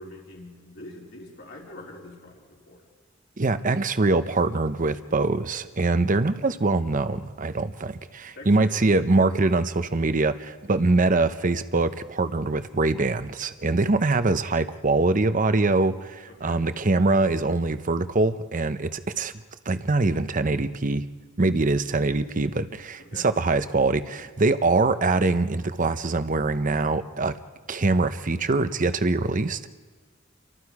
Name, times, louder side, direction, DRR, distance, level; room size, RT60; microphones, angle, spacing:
voice 1, 0.0-2.8 8.4-8.8 16.3-16.6 23.0-23.3, left 1 dB, 65° left, -2 dB, 4.2 m, -44 dB
voice 2, 3.4-19.3 19.7-21.0 21.4-27.4 27.7-29.7, right 3 dB, 40° right, 11 dB, 0.8 m, -23 dB
29.5 x 24.0 x 4.9 m, 1.4 s
head